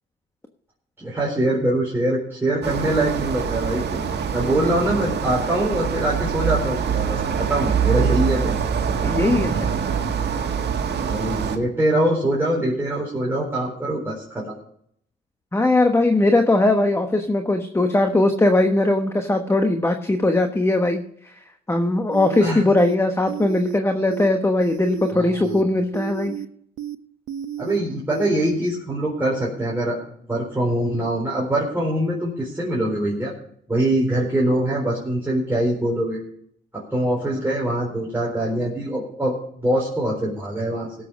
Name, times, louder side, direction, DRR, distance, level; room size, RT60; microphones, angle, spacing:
voice 1, 1.0-4.0 4.3-8.6 11.0-14.5 22.4-22.6 25.1-25.5 27.6-30.0 30.3-33.3 33.7-36.2 36.7-40.9, right 1 dB, 10° right, -4 dB, 4.1 m, -23 dB
sound 1, 2.6-11.6, right 7 dB, 60° right, 1.9 m, -24 dB
voice 2, 9.0-9.7 15.5-21.3 21.7-26.3, left 2 dB, 15° left, 6 dB, 1.2 m, -20 dB
sound 2, 22.1-22.5 22.8-23.0 23.3-23.8 24.1-24.3 24.6-25.1 25.4-25.6 25.9-26.5 26.8-27.0 27.3-27.8 28.1-28.3, right 13 dB, 75° right, 0.6 m, -32 dB
17.5 x 7.6 x 5.2 m, 0.67 s
cardioid pair, 90°, 20 cm